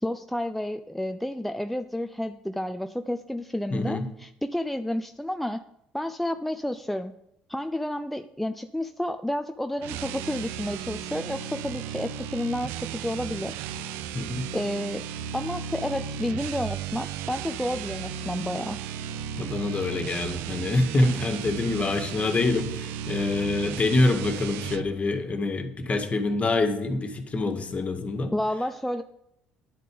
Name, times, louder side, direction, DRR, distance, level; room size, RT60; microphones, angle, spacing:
voice 1, 0.0-5.6 5.9-7.1 7.5-13.7 14.5-15.1 15.3-18.8 28.3-29.0, left 1 dB, 5° left, 8 dB, 0.6 m, -30 dB
voice 2, 3.7-4.1 14.1-14.5 19.4-28.3, left 2 dB, 35° left, 7 dB, 1.8 m, -26 dB
sound 1, 9.8-24.9, right 8 dB, 75° right, 0.6 m, -35 dB
10.5 x 8.4 x 5.2 m, 0.78 s
hypercardioid pair, 60°, 4 cm